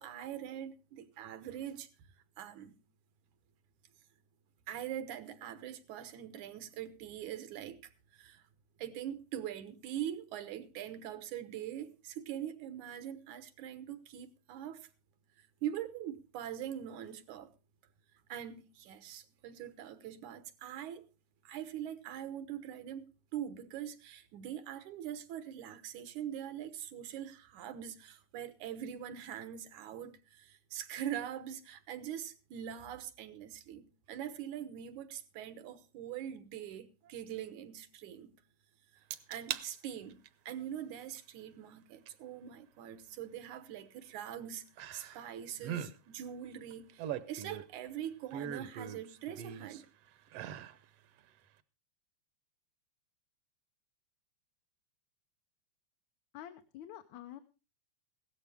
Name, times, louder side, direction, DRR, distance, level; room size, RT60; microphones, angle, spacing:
voice 1, 0.0-1.9 2.4-2.8 4.7-8.4 8.8-14.9 15.6-17.5 18.3-21.1 21.4-23.1 23.3-38.3 39.3-44.6 44.9-49.9, right 10 dB, 85° right, 2.6 m, -43 dB
sound 1, 39.1-39.7 40.1-40.5 42.1-42.2 44.8-45.3 45.6-45.9 46.7-47.8 48.3-49.8 50.3-50.8 51.2-51.3, right 9 dB, 70° right, 1.6 m, -40 dB
voice 2, 56.3-57.4, left 12 dB, 75° left, 2.2 m, -48 dB
16.5 x 13.0 x 3.5 m
omnidirectional pair, 3.3 m